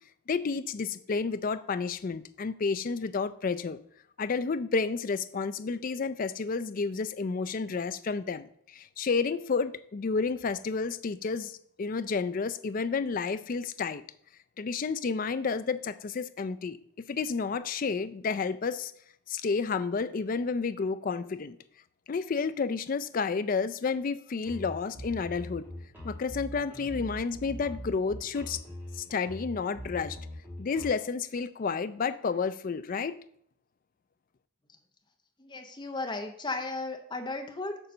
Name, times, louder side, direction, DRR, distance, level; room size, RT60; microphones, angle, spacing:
voice 1, 0.3-3.8 4.2-14.0 14.6-16.8 17.1-18.9 19.3-21.6 22.1-25.7 26.0-28.6 28.9-30.2 30.6-33.2, left 5 dB, 40° left, 13 dB, 0.3 m, -31 dB
sound 1, 24.4-30.9, equal, 10° right, 2.5 m, -42 dB
voice 2, 35.4-37.8, left 3 dB, 20° left, 4 dB, 0.8 m, -35 dB
6.8 x 4.0 x 6.6 m, 0.67 s
head